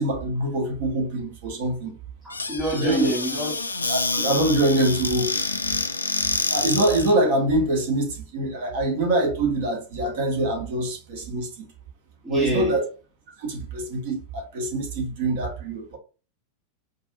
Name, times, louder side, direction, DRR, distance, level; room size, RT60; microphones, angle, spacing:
voice 1, 0.0-1.9 2.7-3.1 3.9-5.3 6.5-11.7 12.3-12.9 13.4-16.0, right 1 dB, 50° right, 1.1 m, -24 dB
voice 2, 2.2-4.1 12.2-12.8, right 1 dB, 10° right, 1.5 m, -28 dB
Squeak / Cupboard open or close, 2.3-7.2, left 3 dB, 80° left, 0.3 m, -27 dB
4.6 x 2.5 x 2.7 m
figure-of-eight pair, 90°, 0 cm